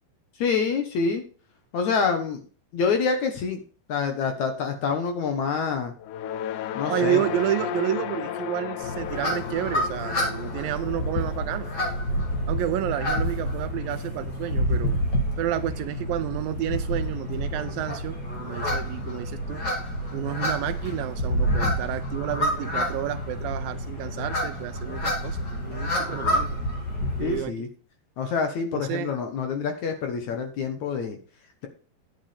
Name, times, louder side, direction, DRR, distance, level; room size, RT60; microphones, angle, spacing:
voice 1, 0.4-1.2 1.7-2.4 2.7-3.6 3.9-5.9 6.8-7.2 27.2-27.7 28.2-31.2, left 5 dB, 65° left, 2.1 m, -26 dB
sound 1, 6.0-14.4, left 9 dB, 90° left, 1.7 m, -35 dB
voice 2, 6.9-11.7 12.5-15.0 15.4-19.6 20.1-26.5 27.2-27.7 28.7-29.2, right 13 dB, 80° right, 2.2 m, -30 dB
sound 2, 8.8-27.4, equal, 30° left, 2.9 m, -28 dB
10.5 x 10.0 x 3.4 m
omnidirectional pair, 4.4 m